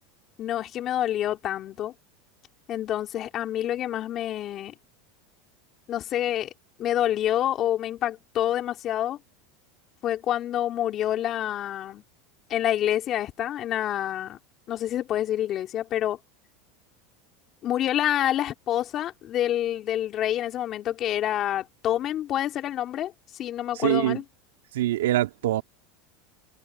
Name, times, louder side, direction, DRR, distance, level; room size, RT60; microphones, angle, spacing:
voice 1, 0.4-1.9 2.7-4.7 5.9-6.5 6.8-9.2 10.0-12.0 12.5-14.4 14.7-16.2 17.6-24.2, left 12 dB, 40° left, 3.9 m, -27 dB
voice 2, 23.8-24.2 24.7-25.6, right 14 dB, 85° right, 2.4 m, -23 dB
supercardioid pair, 115°, 0 cm